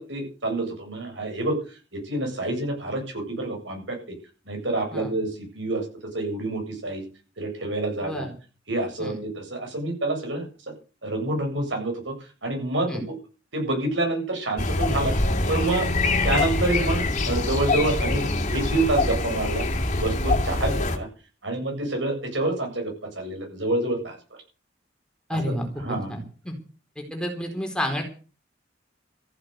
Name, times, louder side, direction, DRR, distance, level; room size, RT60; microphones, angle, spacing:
voice 1, 0.0-1.6 1.9-4.0 4.5-5.3 5.5-5.8 6.1-7.0 7.4-8.3 8.7-10.5 11.0-12.1 12.4-12.9 13.5-15.1 15.5-15.9 16.2-19.7 20.0-21.1 21.4-24.2 25.8-26.1, right 2 dB, 75° right, 3 dB, 7.7 m, -27 dB
sound 1, 14.6-21.0, left 2 dB, 40° left, 2.8 m, -24 dB
voice 2, 25.3-25.7 26.1-26.5 27.0-28.0, equal, 5° left, 3 dB, 4.1 m, -30 dB
15.0 x 8.5 x 8.2 m, 0.37 s
head